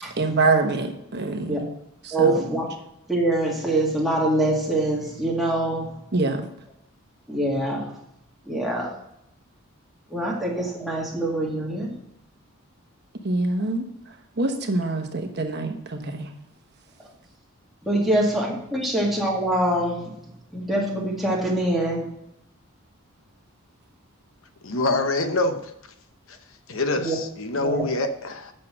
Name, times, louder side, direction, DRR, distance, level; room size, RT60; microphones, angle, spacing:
voice 1, 0.2-1.7 2.0-2.4 6.1-6.4 13.2-13.8 14.4-16.3 18.0-18.2, right 3 dB, 45° right, 4 dB, 1.2 m, -25 dB
voice 2, 2.1-2.7 3.1-5.9 7.3-7.9 8.5-8.9 10.1-11.9 17.8-20.1 20.5-22.1 27.0-27.2 27.5-27.8, right 1 dB, ahead, -4 dB, 2.0 m, -24 dB
voice 3, 24.6-25.6 26.7-28.5, left 2 dB, 65° left, 8 dB, 0.9 m, -25 dB
8.5 x 6.5 x 6.0 m, 0.78 s
head